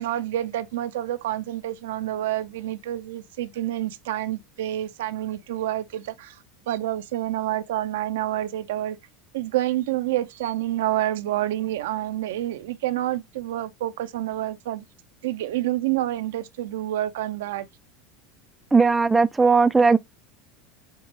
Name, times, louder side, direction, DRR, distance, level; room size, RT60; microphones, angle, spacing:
voice 1, 0.0-6.3 6.7-9.0 9.3-14.8 15.2-17.7, right 14 dB, 80° right, 0.4 m, -28 dB
voice 2, 18.7-20.0, right 4 dB, 15° right, 0.3 m, -17 dB
5.3 x 2.1 x 2.9 m
hypercardioid pair, 90°, 0 cm